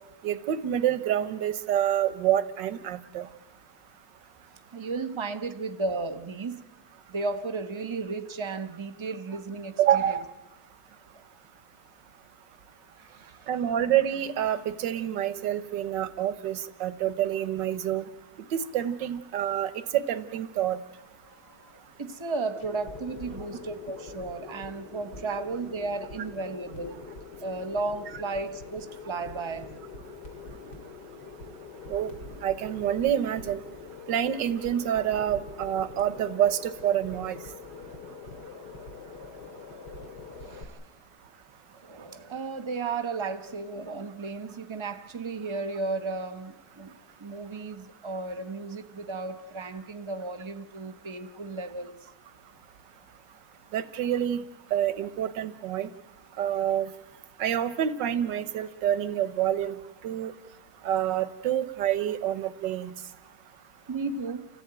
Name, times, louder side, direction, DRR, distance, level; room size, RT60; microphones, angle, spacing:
voice 1, 0.2-3.3 9.8-10.2 13.5-18.0 18.5-20.8 31.9-32.1 32.4-33.6 34.1-37.4 53.7-54.4 54.7-55.9 56.4-56.9 57.4-59.8 60.0-60.3 60.8-62.9, right 10 dB, 90° right, 13 dB, 1.7 m, -27 dB
voice 2, 4.7-6.7 7.1-10.2 13.0-13.5 22.0-27.0 27.4-29.7 40.4-40.8 41.8-52.0 63.9-64.5, right 3 dB, 20° right, 9 dB, 1.0 m, -34 dB
sound 1, 21.0-40.6, left 4 dB, 70° left, 3.2 m, -44 dB
29.5 x 14.0 x 8.9 m, 1.2 s
omnidirectional pair, 1.9 m